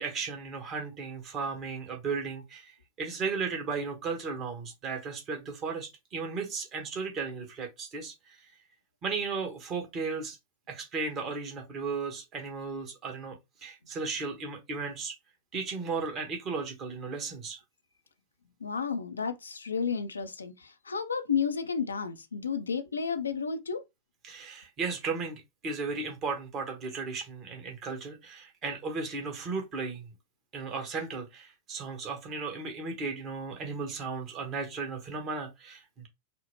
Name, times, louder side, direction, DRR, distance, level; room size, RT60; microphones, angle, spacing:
voice 1, 0.0-2.7 3.0-8.4 9.0-10.4 10.7-15.2 15.5-17.6 24.2-30.1 30.5-36.1, right 4 dB, 30° right, 1.2 m, -35 dB
voice 2, 18.6-23.8, left 6 dB, 75° left, 0.4 m, -32 dB
4.2 x 2.0 x 2.8 m
figure-of-eight pair, 90°, 0 cm